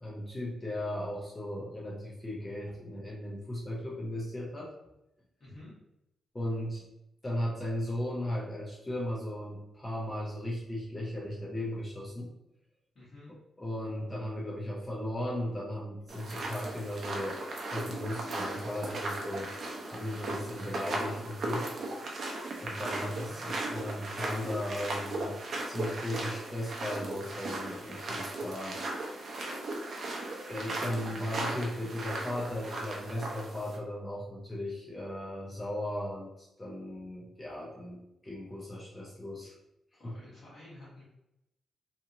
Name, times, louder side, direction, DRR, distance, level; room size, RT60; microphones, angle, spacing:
voice 1, 0.0-4.7 6.3-6.8 7.2-12.3 13.6-17.4 17.7-19.5 19.9-21.7 22.6-25.3 25.7-28.8 30.5-39.5 40.0-40.1, left 1 dB, 15° left, -4 dB, 0.4 m, -36 dB
voice 2, 5.4-5.7 12.9-13.3 23.1-23.4 31.0-31.3 39.9-41.0, left 1 dB, 45° left, -9 dB, 1.4 m, -51 dB
sound 1, 16.1-33.8, right 2 dB, 45° right, 0.5 m, -37 dB
2.8 x 2.6 x 2.5 m, 0.86 s
wide cardioid pair, 175°, 0 cm